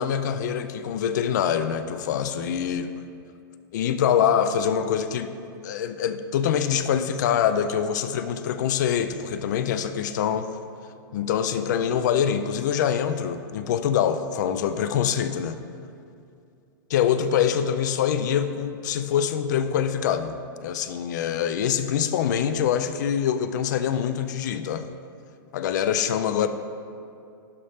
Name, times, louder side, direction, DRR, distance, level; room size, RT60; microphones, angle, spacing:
voice 1, 0.0-2.9 3.7-5.3 5.6-10.5 11.1-15.6 16.9-20.4 20.6-24.8 25.5-26.5, left 8 dB, 50° left, 10 dB, 0.4 m, -24 dB
11.5 x 4.2 x 3.5 m, 2.5 s
supercardioid pair, 160°, 12 cm